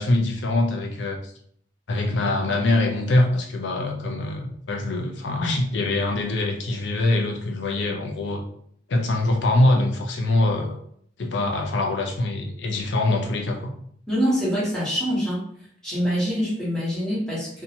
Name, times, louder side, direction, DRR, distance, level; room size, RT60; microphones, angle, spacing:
voice 1, 0.0-1.3 1.9-8.4 8.9-10.8 11.2-13.7, left 2 dB, 65° left, 2 dB, 0.5 m, -23 dB
voice 2, 14.1-15.4 15.8-17.6, equal, 5° left, -9 dB, 1.1 m, -25 dB
2.6 x 2.2 x 2.8 m, 0.64 s
head